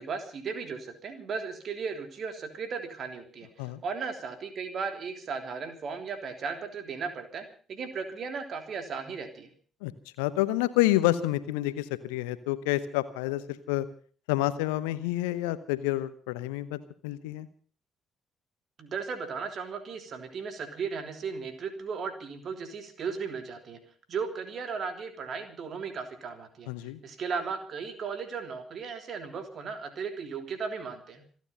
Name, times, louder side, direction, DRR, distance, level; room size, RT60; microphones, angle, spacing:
voice 1, 0.0-9.5 18.8-23.8 24.1-26.7 27.0-31.2, right 5 dB, 50° right, 7 dB, 3.3 m, -36 dB
voice 2, 10.2-13.9 14.3-17.5 26.7-27.0, left 16 dB, 70° left, 15 dB, 1.0 m, -28 dB
27.0 x 9.6 x 5.5 m, 0.42 s
figure-of-eight pair, 45°, 0 cm